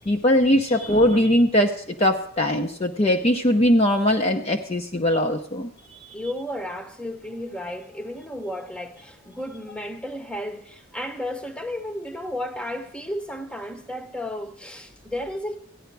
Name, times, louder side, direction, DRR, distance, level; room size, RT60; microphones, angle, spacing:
voice 1, 0.1-5.7 6.0-6.1, left 1 dB, 30° left, 0.5 m, -20 dB
voice 2, 6.1-15.6, left 1 dB, 5° left, 0.8 m, -33 dB
14.0 x 10.0 x 4.6 m
head